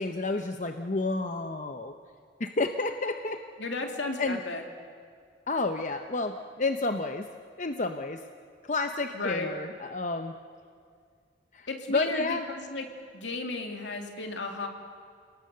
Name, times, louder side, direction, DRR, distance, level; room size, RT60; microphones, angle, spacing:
voice 1, 0.0-1.9 2.4-3.4 4.2-4.4 5.5-7.3 7.6-8.2 8.6-10.3 11.5-12.5, left 3 dB, 40° left, 7 dB, 0.7 m, -30 dB
voice 2, 3.6-4.6 9.1-9.5 11.7-12.8 13.1-14.7, left 2 dB, 75° left, 3 dB, 2.5 m, -34 dB
29.5 x 18.5 x 6.8 m, 2.2 s
head